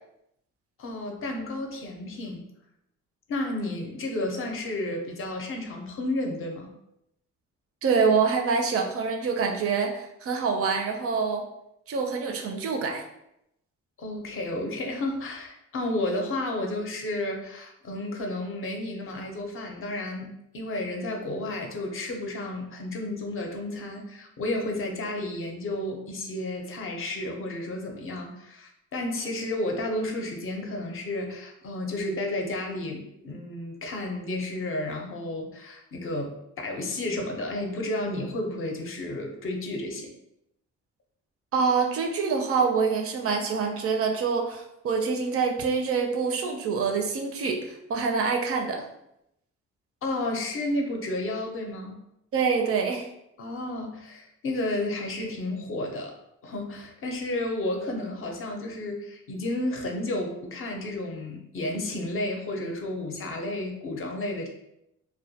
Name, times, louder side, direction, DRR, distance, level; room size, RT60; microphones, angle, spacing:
voice 1, 0.8-2.4 3.3-6.7 14.0-40.1 50.0-52.0 53.4-56.1 56.4-64.5, left 1 dB, 45° left, 2 dB, 0.5 m, -32 dB
voice 2, 7.8-11.4 11.9-13.0 41.5-48.9 52.3-53.1, right 5 dB, 50° right, 3 dB, 0.4 m, -26 dB
2.1 x 2.1 x 2.7 m, 0.82 s
cardioid pair, 90°, 30 cm